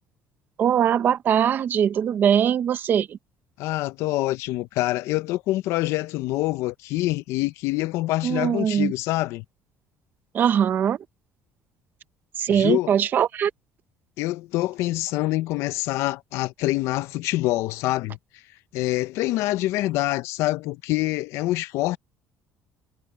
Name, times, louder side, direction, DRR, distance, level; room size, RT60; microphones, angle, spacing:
voice 1, 0.6-3.2 8.2-8.9 10.3-11.0 12.4-13.5, right 9 dB, 45° right, 1.1 m, -21 dB
voice 2, 3.6-9.4 12.5-12.9 14.2-18.2 18.7-22.0, left 17 dB, 75° left, 0.7 m, -25 dB
cardioid pair, 135°, 5 cm